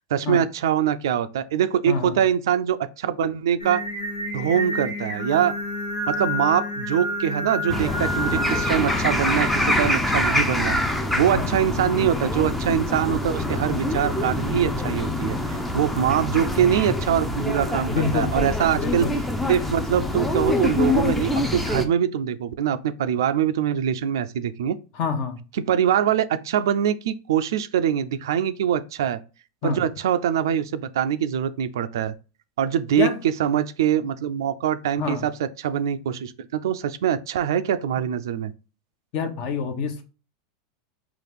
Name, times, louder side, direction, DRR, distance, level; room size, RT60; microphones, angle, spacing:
voice 1, 0.0-3.8 4.3-5.5 6.1-10.8 11.1-19.1 19.5-24.8 25.7-29.2 29.6-32.1 32.6-33.1 33.4-38.5, right 9 dB, 85° right, 0.3 m, -23 dB
voice 2, 1.9-2.2 11.3-11.5 17.9-18.3 18.7-19.2 24.9-25.4 29.6-29.8 33.0-33.2 35.0-35.2 39.1-40.0, left 5 dB, 50° left, 0.8 m, -26 dB
Singing, 3.6-10.2, left 1 dB, 85° left, 1.2 m, -29 dB
sound 1, 7.7-21.8, left 1 dB, 5° left, 0.4 m, -25 dB
3.9 x 2.4 x 3.4 m
supercardioid pair, 130°, 2 cm